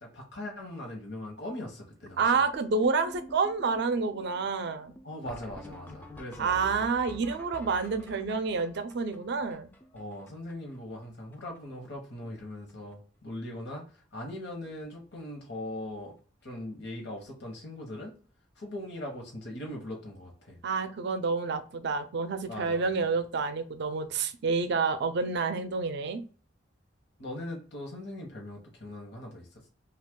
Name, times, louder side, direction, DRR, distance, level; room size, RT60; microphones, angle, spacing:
voice 1, 0.0-2.4 5.0-6.5 9.9-16.1 16.4-18.1 18.6-20.6 22.5-22.9 27.2-29.7, left 1 dB, 60° left, 0 dB, 0.9 m, -40 dB
voice 2, 2.2-4.9 6.4-9.7 20.6-26.2, right 4 dB, 60° right, 10 dB, 0.4 m, -29 dB
sound 1, 2.5-10.7 11.0-11.1 11.3-11.6 11.9-12.4 12.7-12.9 13.8-13.9 14.3-14.4 14.7-14.8 17.1-17.2 19.5-19.6, left 1 dB, 10° left, 0.4 m, -48 dB
2.9 x 2.3 x 3.6 m, 0.40 s
head